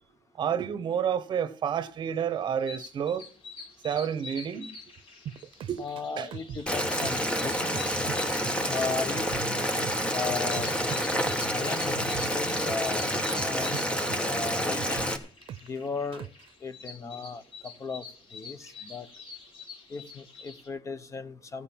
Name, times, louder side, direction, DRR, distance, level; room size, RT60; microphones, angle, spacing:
voice 1, 0.4-3.2 3.8-4.7 5.7-5.8 6.2-6.3, right 8 dB, 60° right, 1.2 m, -29 dB
sound 1, 2.0-20.7, left 4 dB, 85° left, 4.7 m, -46 dB
sound 2, 5.3-7.4 7.7-10.2 10.5-13.0 13.3-15.8 16.1-16.5, right 10 dB, 80° right, 0.6 m, -41 dB
voice 2, 5.8-7.7 8.7-9.3 10.1-10.8 11.5-12.0 12.3-15.1 15.7-16.3 16.6-19.1 19.9-21.6, left 4 dB, 35° left, 0.9 m, -36 dB
Boiling, 6.7-15.2, equal, 10° left, 1.3 m, -28 dB
15.0 x 6.7 x 7.3 m
wide cardioid pair, 160°, 9 cm